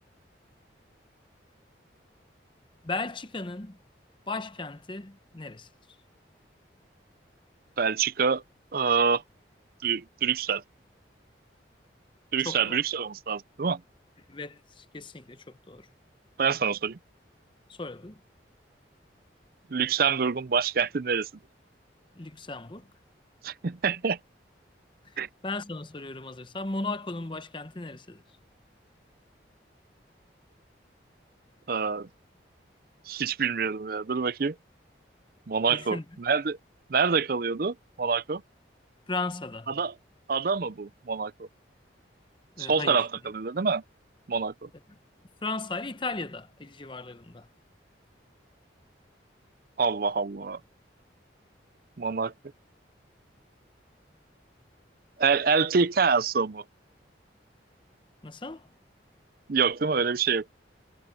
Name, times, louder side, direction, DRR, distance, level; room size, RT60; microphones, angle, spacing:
voice 1, 2.8-3.8 4.3-5.7 12.4-12.8 14.3-15.9 17.7-18.2 22.2-22.9 25.4-28.2 35.7-36.0 39.1-39.7 42.6-43.0 45.4-47.5 58.2-58.7, left 3 dB, 25° left, 0.8 m, -36 dB
voice 2, 7.8-8.4 8.7-9.2 9.8-10.6 12.3-13.8 16.4-17.0 19.7-21.3 23.4-24.2 25.2-25.3 31.7-32.1 33.1-34.6 35.5-36.6 36.9-38.4 39.7-39.9 40.3-41.5 42.6-43.8 44.3-44.7 49.8-50.6 52.0-52.3 55.2-56.6 59.5-60.4, right 5 dB, 50° right, 0.5 m, -26 dB
head